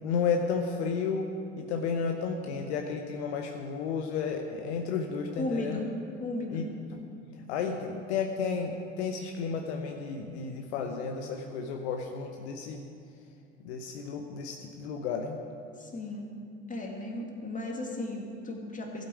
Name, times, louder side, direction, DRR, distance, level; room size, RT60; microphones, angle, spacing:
voice 1, 0.0-1.3 1.6-5.8 6.5-6.6 7.5-12.8 13.6-15.4, left 5 dB, 65° left, 4 dB, 0.9 m, -32 dB
voice 2, 5.4-5.9 6.2-6.7 15.8-16.3 16.7-19.0, left 2 dB, 20° left, 1 dB, 2.2 m, -35 dB
Piano, 10.8-11.8, right 2 dB, 65° right, 3.5 m, -48 dB
16.0 x 7.9 x 4.9 m, 2.4 s
figure-of-eight pair, 65°, 36 cm